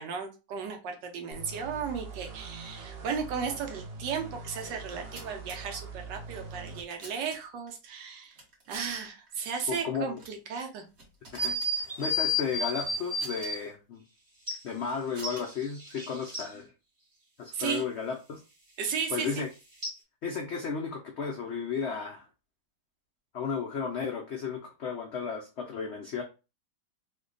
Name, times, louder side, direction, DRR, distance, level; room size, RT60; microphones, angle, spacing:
voice 1, 0.0-8.4 8.7-10.8 17.5-17.8 18.8-19.4, right 6 dB, 80° right, 4 dB, 1.4 m, -35 dB
sound 1, 1.3-6.8, right 4 dB, 60° right, 0.6 m, -43 dB
sound 2, 4.8-5.6 6.4-7.7 8.3-9.0 9.3-9.4 10.1-10.4 10.7-11.7 12.9-13.5 14.5-15.6, right 2 dB, 40° right, 1.2 m, -50 dB
voice 2, 9.7-10.2 11.3-14.0 14.6-16.7 17.4-18.4 19.1-19.5 20.2-22.3 23.3-26.2, left 6 dB, 85° left, 0 dB, 0.6 m, -34 dB
sound 3, 11.4-13.6 14.5-14.6 15.2-16.5 19.8-19.9, left 2 dB, 25° right, 0.8 m, -31 dB
3.3 x 2.2 x 3.8 m, 0.29 s
omnidirectional pair, 1.9 m